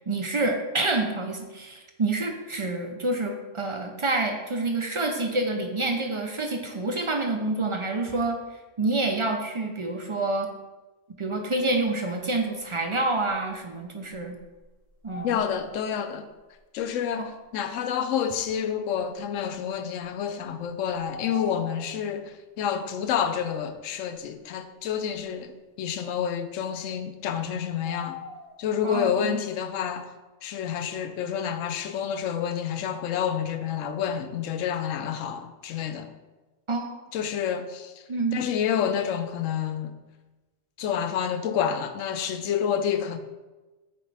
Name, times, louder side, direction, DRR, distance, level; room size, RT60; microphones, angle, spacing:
voice 1, 0.0-8.4 8.8-10.5 11.2-14.4 15.0-15.4 17.2-17.3 28.8-29.4 36.7-36.9 38.1-38.4, right 2 dB, 55° right, 0.3 m, -27 dB
sound 1, 13.2-13.3 14.1-16.0 16.8-16.9 18.4-18.5 20.9-22.1 27.8-28.6, left 3 dB, 40° left, 0.6 m, -41 dB
voice 2, 15.2-16.3 16.7-25.5 25.8-28.2 28.6-30.1 30.4-36.1 37.1-37.9 38.3-39.9 40.8-43.2, left 8 dB, 85° left, 0.9 m, -29 dB
8.5 x 3.6 x 3.3 m
omnidirectional pair, 1.3 m